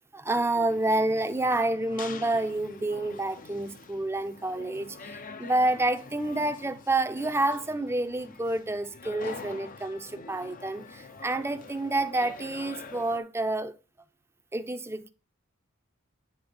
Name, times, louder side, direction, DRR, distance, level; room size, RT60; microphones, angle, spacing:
voice 1, 0.1-13.7 14.5-15.1, right 2 dB, 10° right, 0.6 m, -29 dB
sound 1, 0.7-13.2, left 4 dB, 40° left, 0.7 m, -45 dB
9.5 x 3.8 x 5.2 m
head